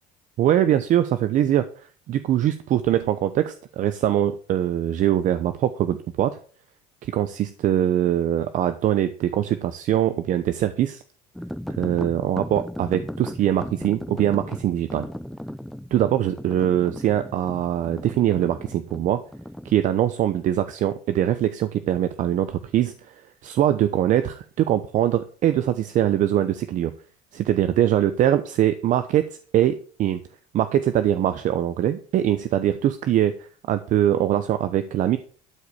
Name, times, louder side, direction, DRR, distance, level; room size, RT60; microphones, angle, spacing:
voice 1, 0.4-1.7 2.1-6.4 7.0-11.0 11.8-15.1 15.9-19.2 19.6-23.1 23.4-26.9 27.3-30.2 30.5-35.2, right 11 dB, 55° right, 10 dB, 0.9 m, -22 dB
sound 1, 11.4-19.7, equal, ahead, 0.5 m, -36 dB
12.5 x 4.9 x 7.1 m, 0.43 s
cardioid pair, 100°, 15 cm